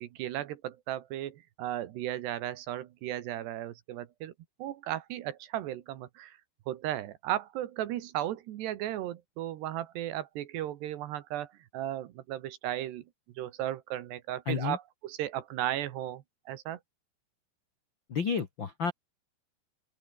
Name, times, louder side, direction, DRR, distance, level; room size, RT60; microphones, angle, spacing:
voice 1, 0.0-4.3 4.6-6.4 6.7-13.0 13.4-16.8, right 13 dB, 75° right, 3.3 m, -35 dB
voice 2, 14.4-14.8 18.1-18.9, left 6 dB, 85° left, 1.0 m, -31 dB
open air
omnidirectional pair, 5.2 m